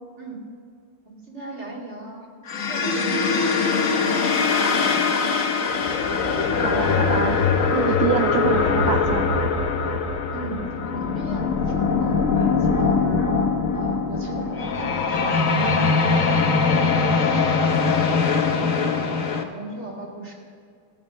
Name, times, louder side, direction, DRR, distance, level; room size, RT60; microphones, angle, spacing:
voice 1, 1.0-2.3 2.7-5.5 10.3-10.6 10.9-13.3 13.7-17.3 17.9-20.3, right 2 dB, 40° right, -2 dB, 2.6 m, -37 dB
sound 1, 2.5-19.4, left 5 dB, 55° left, 1.3 m, -22 dB
voice 2, 6.6-7.4 7.7-9.4, right 10 dB, 80° right, 7 dB, 1.3 m, -26 dB
17.0 x 7.5 x 6.2 m, 2.2 s
omnidirectional pair, 2.0 m